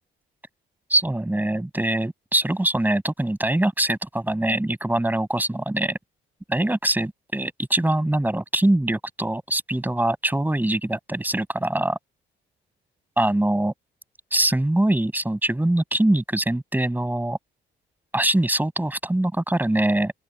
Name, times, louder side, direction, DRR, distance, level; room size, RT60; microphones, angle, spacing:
voice 1, 0.9-6.0 6.5-12.0 13.2-13.7 14.3-17.4 18.1-20.1, right 1 dB, 10° right, 7.6 m, -23 dB
open air
cardioid pair, 90°, 20 cm